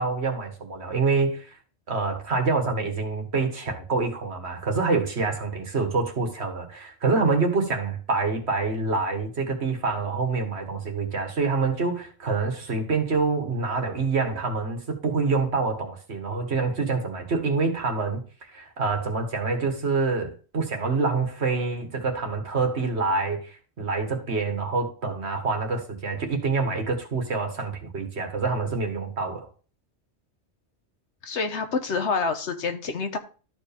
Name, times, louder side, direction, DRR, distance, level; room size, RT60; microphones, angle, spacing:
voice 1, 0.0-1.6 1.9-29.5, right 4 dB, 65° right, 1.9 m, -26 dB
voice 2, 31.2-33.2, left 4 dB, 80° left, 1.4 m, -27 dB
13.0 x 4.8 x 3.5 m
omnidirectional pair, 1.2 m